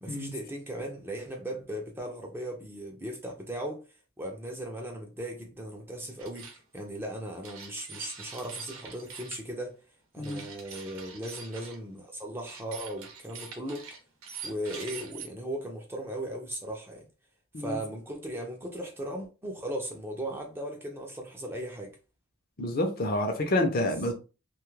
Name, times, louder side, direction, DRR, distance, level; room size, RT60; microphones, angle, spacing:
voice 1, 0.0-3.9 4.2-9.7 10.1-13.9 14.4-17.1 17.6-22.0 23.8-23.9, right 1 dB, 10° right, 0.5 m, -37 dB
sound 1, 6.2-6.6 7.4-9.4 10.2-11.8 12.5-15.3, right 5 dB, 90° right, 0.7 m, -44 dB
voice 2, 22.6-24.1, left 1 dB, 45° left, 0.6 m, -28 dB
2.7 x 2.3 x 3.1 m
head